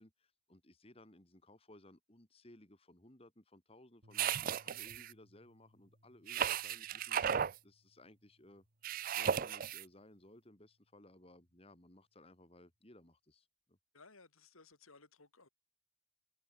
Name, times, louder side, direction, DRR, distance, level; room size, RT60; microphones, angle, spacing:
voice 1, 0.0-8.6 9.1-13.8, left 1 dB, 30° left, 2.3 m, -60 dB
sound 1, 4.0-12.4, equal, 65° right, 6.0 m, -71 dB
sound 2, 4.1-5.1 6.3-7.6 8.8-9.8, right 8 dB, 40° right, 0.4 m, -35 dB
voice 2, 13.9-15.5, left 3 dB, 90° left, 3.6 m, -60 dB
head